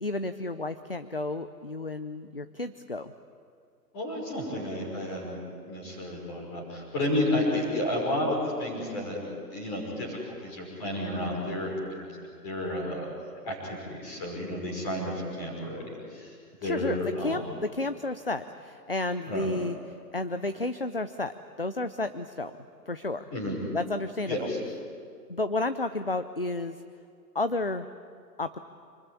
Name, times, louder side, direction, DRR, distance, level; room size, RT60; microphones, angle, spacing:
voice 1, 0.0-3.1 16.6-22.6 22.9-23.3 23.7-24.5 25.3-26.8 27.3-27.9 28.4-28.6, left 2 dB, 35° left, 11 dB, 0.6 m, -32 dB
voice 2, 3.9-5.4 5.7-9.2 9.5-12.1 12.4-13.1 13.4-16.3 16.6-17.4 19.3-19.5 23.3-23.6 24.3-24.6, left 1 dB, 15° left, -1 dB, 5.7 m, -31 dB
28.0 x 21.0 x 9.9 m, 2.4 s
hypercardioid pair, 180°, 50 cm